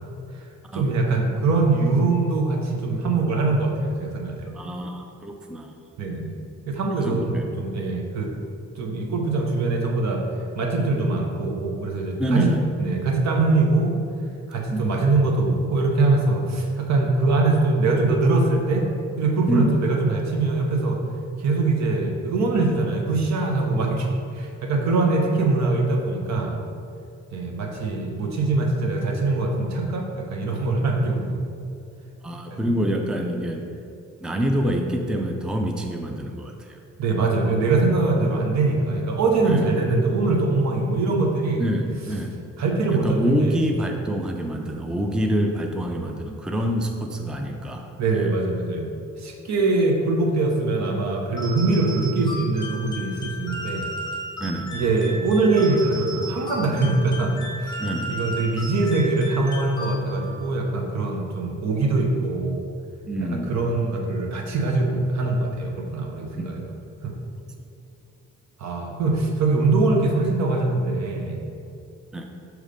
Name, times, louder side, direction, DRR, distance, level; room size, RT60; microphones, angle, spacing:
voice 1, 0.7-4.5 6.0-6.3 6.7-8.3 8.8-10.3 10.5-12.5 12.8-14.0 14.5-18.9 19.2-21.0 21.4-24.1 24.3-26.6 27.3-31.4 32.5-32.7 37.0-41.6 42.6-43.6 48.0-48.9 49.2-53.9 54.7-57.8 58.1-62.6 63.3-66.7 67.0-67.1 68.6-71.4, right 3 dB, 65° right, 1 dB, 1.0 m, -22 dB
voice 2, 4.5-5.7 7.0-7.5 12.2-12.6 14.7-14.8 19.5-19.7 32.2-33.7 34.2-36.8 39.4-39.7 41.6-42.4 42.9-47.9 54.4-54.8 57.8-58.2 63.1-63.5 66.4-66.5 72.1-72.2, equal, 5° right, 3 dB, 0.4 m, -26 dB
sound 1, 51.4-60.4, equal, 15° left, 1.1 m, -35 dB
6.4 x 3.2 x 5.1 m, 2.5 s
cardioid pair, 90°, 30 cm